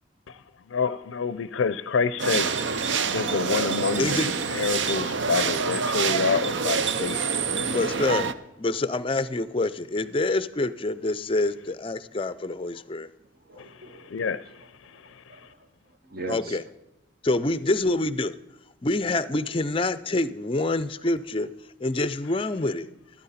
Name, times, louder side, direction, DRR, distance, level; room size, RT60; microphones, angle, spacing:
voice 1, 0.7-7.8 13.6-15.5, left 5 dB, 80° left, 0.5 m, -29 dB
sound 1, 2.2-8.3, right 5 dB, 65° right, 0.6 m, -26 dB
voice 2, 4.0-4.3 7.7-8.3 8.6-13.1 13.5-13.7 16.3-16.6 17.2-18.3 18.8-21.5 21.8-22.9, left 2 dB, 25° left, 0.5 m, -26 dB
voice 3, 13.2-14.2 14.6-16.6, right 2 dB, 50° right, 1.0 m, -42 dB
13.5 x 12.5 x 4.2 m
head